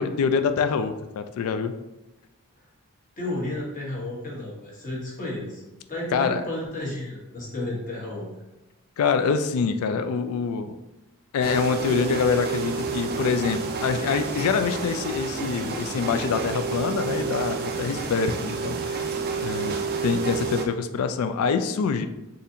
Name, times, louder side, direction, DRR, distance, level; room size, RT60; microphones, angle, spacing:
voice 1, 0.0-1.7 6.1-6.4 9.0-10.8 11.3-19.0 19.4-19.8 20.0-22.1, left 5 dB, 75° left, 10 dB, 0.3 m, -25 dB
voice 2, 3.2-5.6 5.9-8.3, left 1 dB, 40° left, -3 dB, 1.0 m, -32 dB
sound 1, 11.4-20.7, right 5 dB, 45° right, 0.4 m, -30 dB
4.0 x 2.5 x 2.7 m, 1.0 s
head